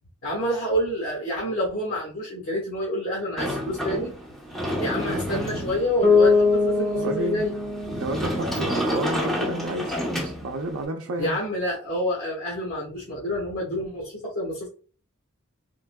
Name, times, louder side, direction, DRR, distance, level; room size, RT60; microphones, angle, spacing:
voice 1, 0.2-4.1 4.8-7.5 11.2-14.7, equal, 85° left, -4 dB, 1.3 m, -28 dB
Sliding door, 3.4-10.8, equal, ahead, 0.8 m, -30 dB
Bass guitar, 6.0-9.9, left 4 dB, 30° left, 1.1 m, -23 dB
voice 2, 7.0-7.4 7.9-11.5, right 2 dB, 80° right, 1 dB, 0.5 m, -31 dB
3.8 x 3.5 x 2.2 m, 0.41 s
head